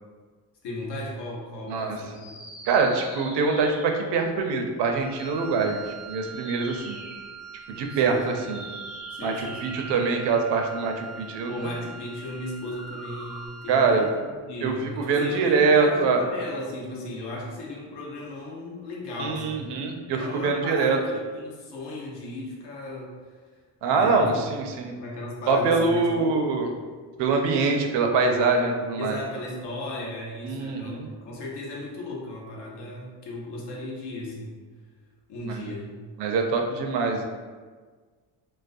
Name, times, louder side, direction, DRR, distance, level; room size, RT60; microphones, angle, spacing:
voice 1, 0.6-2.4 7.9-8.5 9.1-9.8 11.5-19.7 20.1-23.1 23.9-24.5 24.8-26.3 28.9-34.6 35.3-36.0, left 1 dB, 60° left, -3 dB, 0.8 m, -36 dB
sound 1, 2.1-4.2 6.3-7.3 8.3-10.5 12.6-13.5, equal, ahead, 0.3 m, -43 dB
voice 2, 2.7-5.8 6.1-7.0 7.7-8.2 8.5-8.6 9.2-11.5 13.7-14.1 14.6-16.2 19.2-21.0 23.8-24.9 25.5-26.7 27.2-29.2 30.4-31.1 35.5-35.7 36.2-37.2, right 4 dB, 60° right, 3 dB, 0.5 m, -24 dB
Wind instrument woodwind instrument, 5.0-14.3, right 6 dB, 30° left, 0.7 m, -42 dB
2.3 x 2.1 x 2.5 m, 1.5 s
cardioid pair, 85°, 47 cm